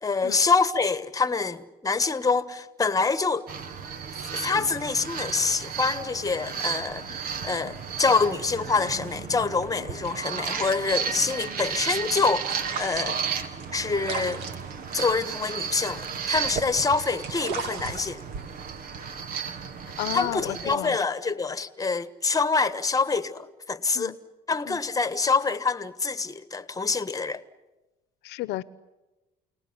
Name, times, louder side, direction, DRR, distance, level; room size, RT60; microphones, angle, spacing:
voice 1, 0.0-3.5 4.3-7.1 7.4-13.2 13.7-14.4 14.9-18.2 20.1-24.1 24.5-27.4, left 4 dB, 20° left, 1.5 m, -26 dB
sound 1, 3.5-20.7, right 6 dB, 60° right, 2.0 m, -33 dB
sound 2, 12.3-16.7 17.0-19.5, right 5 dB, 75° right, 2.5 m, -38 dB
voice 2, 20.0-21.0 23.9-24.2 24.7-24.8 28.2-28.6, left 17 dB, 75° left, 1.1 m, -33 dB
29.5 x 19.0 x 9.8 m
supercardioid pair, 90°, 17 cm